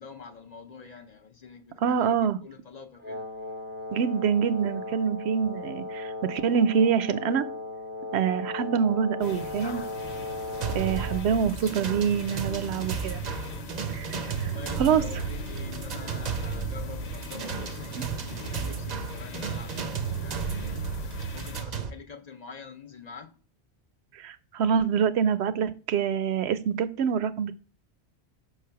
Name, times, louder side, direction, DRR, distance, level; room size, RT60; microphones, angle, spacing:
voice 1, 0.0-3.2 10.5-11.4 14.4-20.8 21.3-23.3, left 5 dB, 50° left, 0.6 m, -46 dB
voice 2, 1.8-2.4 3.9-7.5 8.1-9.8 10.7-13.2 13.9-15.3 17.9-18.0 24.1-27.6, right 7 dB, 80° right, 0.8 m, -26 dB
Wind instrument woodwind instrument, 3.0-11.3, left 2 dB, 10° right, 0.7 m, -37 dB
sound 1, 9.2-21.6, left 4 dB, 80° left, 1.1 m, -42 dB
sound 2, 10.6-21.9, right 6 dB, 50° right, 0.6 m, -33 dB
5.8 x 3.3 x 5.6 m
omnidirectional pair, 1.1 m